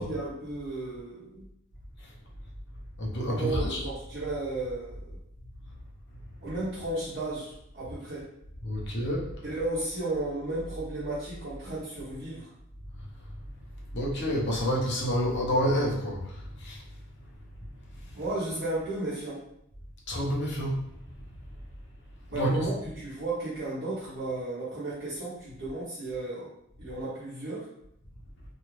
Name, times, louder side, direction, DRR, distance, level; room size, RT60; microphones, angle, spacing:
voice 1, 0.0-1.5 3.3-5.2 6.4-8.3 9.4-12.5 18.1-19.4 22.3-26.5 26.8-27.7, right 2 dB, 50° right, -11 dB, 0.9 m, -34 dB
voice 2, 3.0-3.8 8.6-9.3 13.9-16.8 20.1-20.8 22.3-22.7, equal, 55° left, -3 dB, 0.8 m, -28 dB
2.7 x 2.4 x 3.1 m, 0.77 s
head